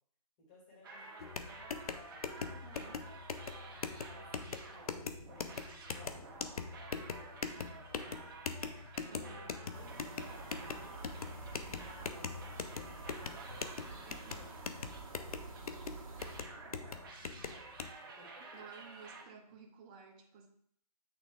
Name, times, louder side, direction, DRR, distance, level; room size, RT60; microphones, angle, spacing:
voice 1, 0.4-2.4 2.9-8.3 9.1-13.4 14.0-17.6 18.0-18.7, left 2 dB, 20° left, -5 dB, 2.5 m, -62 dB
sound 1, 0.8-15.8 16.2-19.2, right 3 dB, 35° right, 1.1 m, -52 dB
sound 2, 1.2-17.9, left 5 dB, 65° left, 0.7 m, -42 dB
voice 2, 2.4-3.0 9.1-9.4 14.0-14.5 18.5-20.5, right 5 dB, 15° right, 1 dB, 0.6 m, -54 dB
sound 3, 9.7-16.4, right 3 dB, 55° right, 1.7 m, -49 dB
8.6 x 3.6 x 3.3 m, 0.65 s
hypercardioid pair, 155°, 20 cm